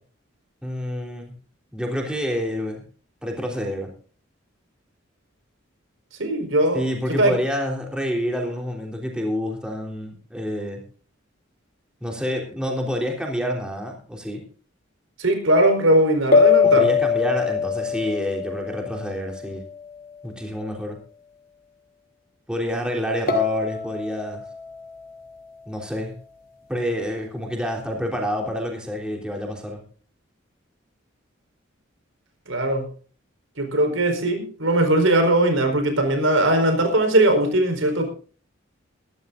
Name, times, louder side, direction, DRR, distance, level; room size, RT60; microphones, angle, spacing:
voice 1, 0.6-1.3 1.7-2.9 3.2-3.9 6.7-10.9 12.0-14.5 16.6-19.6 20.2-21.0 22.5-24.5 25.6-26.1 26.7-29.8, equal, 5° right, 0 dB, 3.6 m, -28 dB
voice 2, 6.2-6.8 7.2-7.3 15.2-16.9 32.5-32.9 33.6-38.1, right 1 dB, 80° right, 6 dB, 4.7 m, -19 dB
sound 1, 16.3-19.8 23.3-26.3, left 6 dB, 45° left, 2.7 m, -23 dB
22.0 x 13.5 x 2.6 m, 0.40 s
head